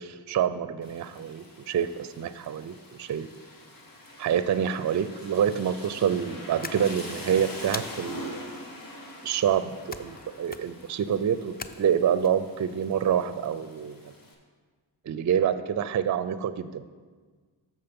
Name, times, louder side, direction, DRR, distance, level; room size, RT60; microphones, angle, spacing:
voice 1, 0.0-3.3 4.2-8.5 9.2-14.1 15.1-16.8, right 8 dB, 40° right, 13 dB, 0.4 m, -27 dB
Rain, 0.8-14.3, left 1 dB, 45° left, 1.7 m, -44 dB
sound 1, 6.6-7.2 7.7-8.3 9.9-10.2 10.5-10.9 11.6-12.3, left 4 dB, 20° left, 0.4 m, -40 dB
6.7 x 6.4 x 5.3 m, 1.5 s
cardioid pair, 50°, 46 cm